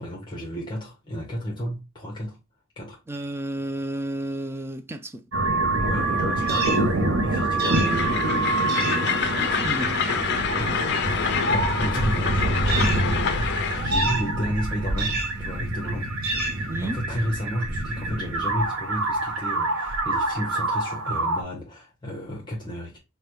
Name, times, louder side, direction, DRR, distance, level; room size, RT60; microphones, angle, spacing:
voice 1, 0.0-2.4 2.8-3.0 5.8-9.2 10.6-16.2 16.5-23.0, equal, 20° left, 0.9 m, -33 dB
voice 2, 3.1-5.2 9.6-10.0 16.7-17.0, right 1 dB, 10° right, 0.3 m, -31 dB
sound 1, 5.3-21.4, right 2 dB, 60° right, 0.7 m, -26 dB
sound 2, 6.5-6.8 7.6-7.9 8.7-9.0 12.7-13.0 13.9-14.3 15.0-15.3 16.2-16.6, right 3 dB, 45° right, 1.3 m, -29 dB
Train, 7.8-13.9, left 7 dB, 50° left, 0.5 m, -27 dB
4.9 x 2.2 x 3.0 m
head